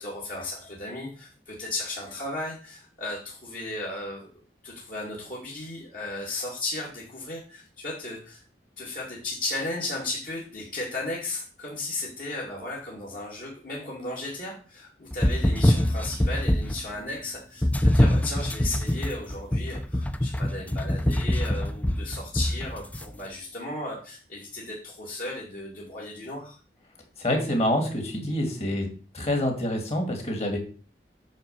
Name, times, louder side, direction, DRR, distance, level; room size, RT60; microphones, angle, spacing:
voice 1, 0.0-4.3 4.6-8.5 8.8-26.6, left 2 dB, 50° left, -4 dB, 2.5 m, -35 dB
sound 1, 15.1-16.9 17.6-23.0, left 1 dB, 10° left, 0.4 m, -24 dB
voice 2, 27.2-28.9 29.1-30.6, left 1 dB, 35° left, 4 dB, 2.3 m, -26 dB
9.2 x 3.9 x 6.9 m, 0.38 s
head